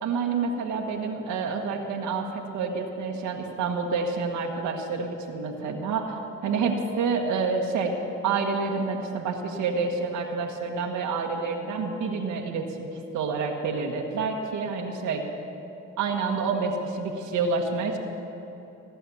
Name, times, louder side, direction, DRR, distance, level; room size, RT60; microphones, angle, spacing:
voice 1, 0.0-6.2 6.4-7.9 8.2-15.2 16.0-18.0, right 4 dB, 80° right, 1 dB, 1.7 m, -28 dB
17.0 x 10.5 x 7.1 m, 3.0 s
cardioid pair, 90°, 30 cm